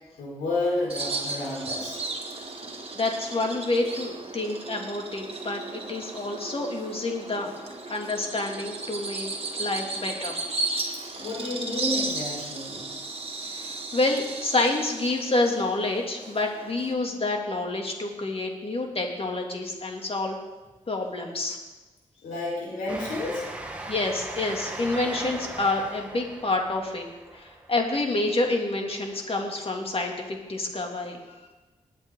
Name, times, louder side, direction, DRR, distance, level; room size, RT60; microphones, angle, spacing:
voice 1, 0.2-2.0 11.2-12.9 22.2-23.4, left 2 dB, 90° left, -3 dB, 4.7 m, -30 dB
Bird vocalization bird call bird song, 0.9-16.9, right 3 dB, 45° right, 2.0 m, -35 dB
voice 2, 2.9-7.6 7.9-9.3 9.6-10.3 13.4-20.4 20.9-21.6 23.9-27.0 27.3-31.2, left 2 dB, 45° left, 1 dB, 2.9 m, -28 dB
Train, 22.9-29.0, right 2 dB, 10° right, 2.5 m, -39 dB
20.0 x 8.6 x 4.0 m, 1.2 s
supercardioid pair, 45°, 13 cm